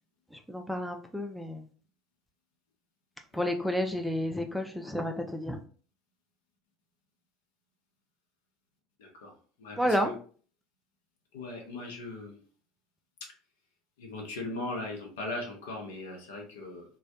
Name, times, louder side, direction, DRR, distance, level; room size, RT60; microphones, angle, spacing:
voice 1, 0.5-1.7 3.3-5.6 9.8-10.1, equal, ahead, 5 dB, 0.3 m, -30 dB
voice 2, 9.0-9.3 9.6-10.1 11.3-12.3 14.0-16.8, left 2 dB, 75° left, 1 dB, 0.7 m, -39 dB
2.3 x 2.1 x 2.8 m, 0.43 s
hypercardioid pair, 70°, 0 cm